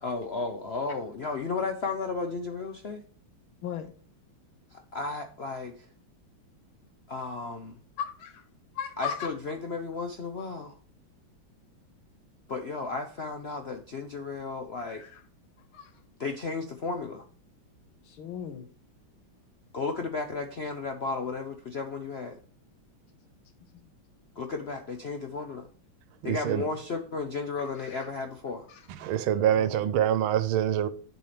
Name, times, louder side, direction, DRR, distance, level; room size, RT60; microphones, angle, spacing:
voice 1, 0.0-3.0 4.7-5.7 7.1-7.8 9.0-10.7 12.5-15.0 16.2-17.3 19.7-22.4 24.4-25.7 26.2-28.7, left 4 dB, 65° left, 0.6 m, -34 dB
voice 2, 3.6-3.9 8.0-8.4 8.8-9.3 14.8-15.2 15.7-15.9 18.0-18.7 23.7-23.9 27.6-28.1 28.7-28.8 29.5-29.7, left 8 dB, 85° left, 2.0 m, -37 dB
voice 3, 26.2-26.6 28.9-30.9, right 10 dB, 85° right, 1.6 m, -25 dB
8.4 x 7.2 x 3.3 m
omnidirectional pair, 2.2 m